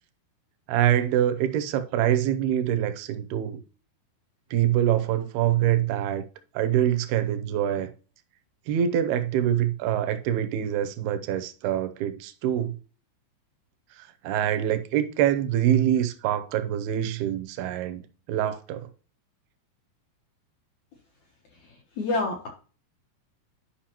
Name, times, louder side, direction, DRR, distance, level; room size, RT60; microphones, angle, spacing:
voice 1, 0.7-3.6 4.5-6.3 6.5-7.9 8.7-12.8 14.0-18.0 18.3-18.9, right 11 dB, 75° right, 2.5 m, -25 dB
voice 2, 22.0-22.5, left 3 dB, 70° left, 1.7 m, -26 dB
11.5 x 5.5 x 2.9 m
omnidirectional pair, 4.9 m